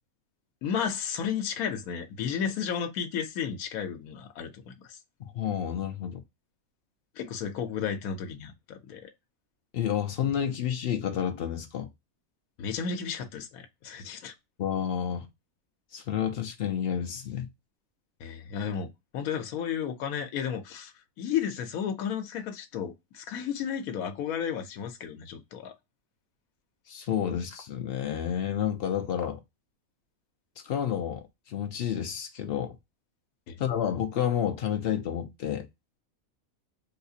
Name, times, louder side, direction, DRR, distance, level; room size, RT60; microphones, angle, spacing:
voice 1, 0.6-5.0 7.2-9.1 12.6-14.3 18.2-20.9 21.2-25.7 33.5-33.6, left 7 dB, 85° left, 1.1 m, -33 dB
voice 2, 5.2-6.2 9.7-11.9 14.6-15.3 15.9-17.5 26.9-29.4 30.6-32.8 33.6-35.7, left 9 dB, 70° left, 0.5 m, -30 dB
3.8 x 2.4 x 2.7 m
omnidirectional pair, 1.5 m